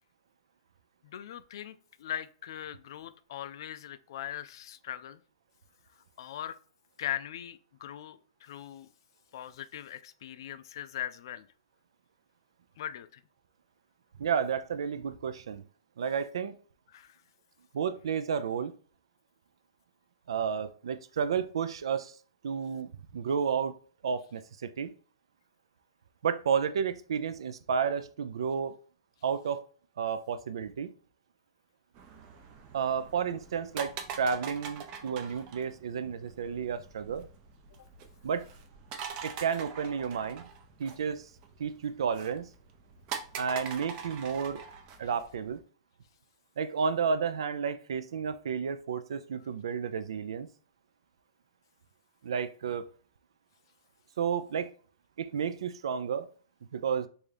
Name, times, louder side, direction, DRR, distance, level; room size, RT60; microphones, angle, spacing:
voice 1, 1.0-5.2 6.2-6.6 7.0-8.9 9.3-11.5 12.8-13.2 16.9-17.2, left 11 dB, 60° left, 0.3 m, -40 dB
voice 2, 14.2-15.6 16.0-16.5 17.7-18.8 20.3-22.2 22.4-23.7 24.0-24.9 26.2-28.8 29.2-29.6 30.0-30.9 32.7-37.3 38.2-38.5 39.2-40.5 40.8-41.3 41.6-42.5 43.3-44.6 45.0-45.6 46.6-50.5 52.2-52.8 54.2-54.7 55.2-56.3 56.7-57.1, right 6 dB, 80° right, 0.4 m, -31 dB
sound 1, 31.9-45.6, right 6 dB, 30° right, 0.5 m, -44 dB
3.5 x 2.7 x 3.3 m
hypercardioid pair, 155°, 3 cm